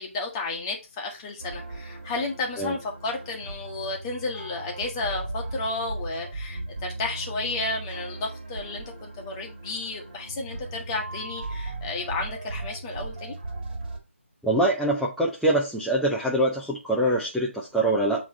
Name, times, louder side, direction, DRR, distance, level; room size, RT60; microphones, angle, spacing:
voice 1, 0.0-6.6 7.0-13.3, left 3 dB, 20° left, 1.2 m, -32 dB
sound 1, 1.4-14.0, right 2 dB, 45° right, 2.0 m, -37 dB
voice 2, 14.4-18.2, right 1 dB, ahead, 0.3 m, -24 dB
7.3 x 3.1 x 4.0 m
figure-of-eight pair, 160°, 7 cm